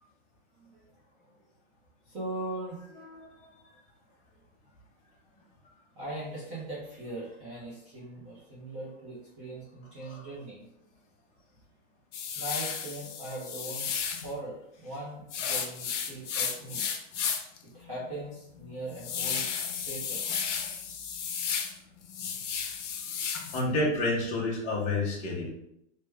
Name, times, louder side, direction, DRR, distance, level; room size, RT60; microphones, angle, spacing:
voice 1, 2.1-2.8 6.0-10.7 12.4-13.9 14.2-16.9 17.7-20.3 23.2-23.3, right 2 dB, 15° right, -8 dB, 0.4 m, -40 dB
sound 1, 12.1-14.3 15.3-17.6 18.0-18.1 18.5-21.7 22.0-23.6, left 7 dB, 70° left, 0.6 m, -33 dB
voice 2, 23.5-25.5, left 2 dB, 20° left, -4 dB, 0.7 m, -29 dB
3.3 x 2.1 x 3.2 m, 0.78 s
hypercardioid pair, 155°, 38 cm